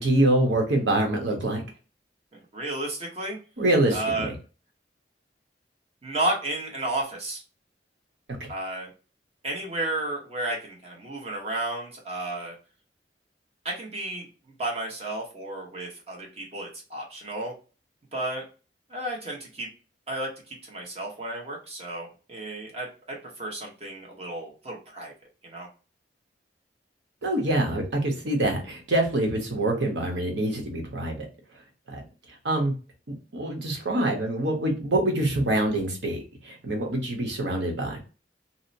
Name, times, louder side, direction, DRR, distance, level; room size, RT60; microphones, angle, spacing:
voice 1, 0.0-1.6 3.6-4.3 8.4-8.5 27.2-31.3 31.9-32.0 32.4-32.7 33.3-38.0, right 1 dB, 90° right, 2 dB, 0.9 m, -25 dB
voice 2, 2.5-3.4 3.9-4.3 6.0-7.4 8.5-8.9 9.4-12.6 13.6-14.3 14.6-17.5 18.1-18.4 18.9-19.7 20.1-25.1 25.4-25.7, right 1 dB, 35° right, -1 dB, 1.0 m, -32 dB
2.7 x 2.1 x 2.6 m, 0.33 s
head